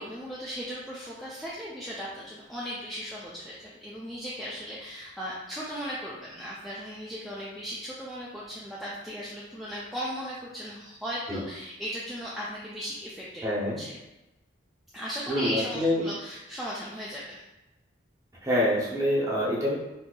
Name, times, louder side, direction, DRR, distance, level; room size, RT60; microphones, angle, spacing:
voice 1, 0.0-13.4 13.8-13.9 14.9-17.4, equal, ahead, -7 dB, 0.3 m, -37 dB
voice 2, 13.4-13.8 15.3-16.1 18.4-19.7, left 1 dB, 15° right, -6 dB, 0.8 m, -26 dB
3.8 x 2.7 x 2.3 m, 0.99 s
head